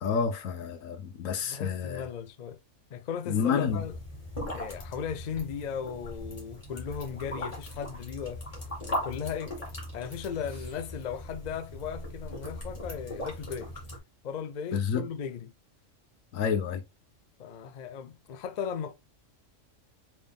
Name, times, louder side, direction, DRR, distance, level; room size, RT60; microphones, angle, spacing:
voice 1, 0.0-2.0 3.3-3.8 14.7-15.1 16.3-16.8, left 6 dB, 85° left, 1.1 m, -29 dB
voice 2, 1.5-2.6 2.9-3.9 4.5-8.4 8.8-9.5 9.9-13.7 14.2-15.5 17.4-18.9, left 7 dB, 60° left, 0.4 m, -36 dB
sound 1, 3.7-14.0, left 1 dB, 30° left, 1.8 m, -39 dB
4.2 x 3.5 x 2.4 m
omnidirectional pair, 1.3 m